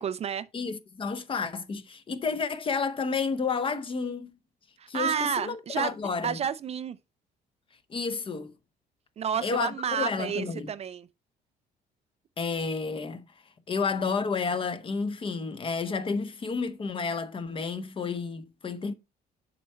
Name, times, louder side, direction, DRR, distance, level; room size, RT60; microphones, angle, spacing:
voice 1, 0.0-0.5 4.8-5.9 6.2-7.0 9.2-11.1, right 8 dB, 40° right, 0.4 m, -30 dB
voice 2, 0.5-4.3 4.9-6.4 7.9-8.5 9.4-10.7 12.4-13.2 13.7-18.9, left 5 dB, 30° left, 0.8 m, -31 dB
7.0 x 4.3 x 4.3 m
cardioid pair, 110°, 17 cm